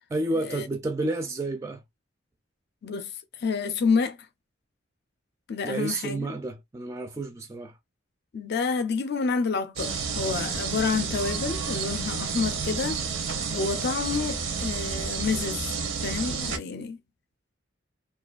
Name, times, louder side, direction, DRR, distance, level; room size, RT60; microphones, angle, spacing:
voice 1, 0.1-1.8 5.6-7.8, right 2 dB, 15° right, 0.3 m, -30 dB
voice 2, 2.8-3.1 3.4-4.3 5.5-6.3 8.3-13.2 13.5-15.7 16.0-17.0, left 5 dB, 55° left, 0.5 m, -29 dB
sound 1, 9.8-16.6, right 5 dB, 85° right, 0.6 m, -30 dB
2.4 x 2.4 x 2.3 m
head